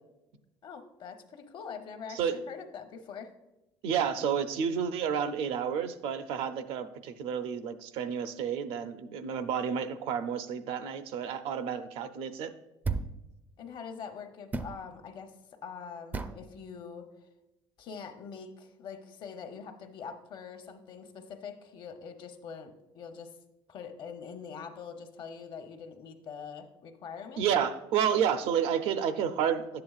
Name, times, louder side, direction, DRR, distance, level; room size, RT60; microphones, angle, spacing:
voice 1, 0.6-3.3 13.6-15.3 15.6-17.1 17.8-23.3 23.7-27.5, left 6 dB, 50° left, 6 dB, 0.8 m, -44 dB
voice 2, 3.8-12.5 27.4-29.8, right 8 dB, 70° right, 10 dB, 0.5 m, -30 dB
sound 1, 12.8-13.2 14.5-14.8 16.1-16.4, right 4 dB, 15° right, 0.4 m, -33 dB
10.5 x 7.7 x 2.4 m, 0.96 s
cardioid pair, 105°, 10 cm